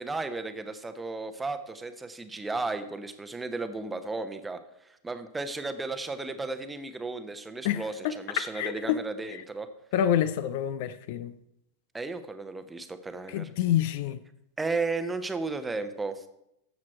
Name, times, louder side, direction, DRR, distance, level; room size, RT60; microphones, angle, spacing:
voice 1, 0.0-9.7 11.9-13.5 14.6-16.2, right 3 dB, 10° right, 1.0 m, -34 dB
voice 2, 7.6-9.0 9.9-11.3 13.3-14.2, left 10 dB, 50° left, 0.5 m, -28 dB
14.0 x 7.4 x 4.4 m
figure-of-eight pair, 90°, 0 cm